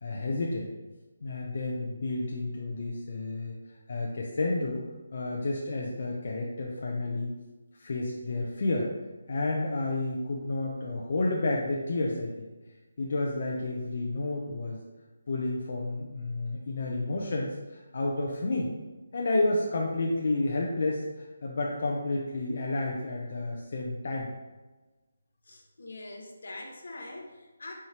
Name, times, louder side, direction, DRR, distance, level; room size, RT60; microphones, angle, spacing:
voice 1, 0.0-0.7 1.2-3.5 3.9-4.8 5.1-7.3 7.7-8.9 9.3-12.5 13.0-14.8 15.3-18.7 19.1-24.3, left 2 dB, 50° left, -2 dB, 0.5 m, -30 dB
voice 2, 25.4-27.7, left 2 dB, 75° left, 1 dB, 0.9 m, -43 dB
4.2 x 3.5 x 2.9 m, 1.2 s
hypercardioid pair, 170°, 0 cm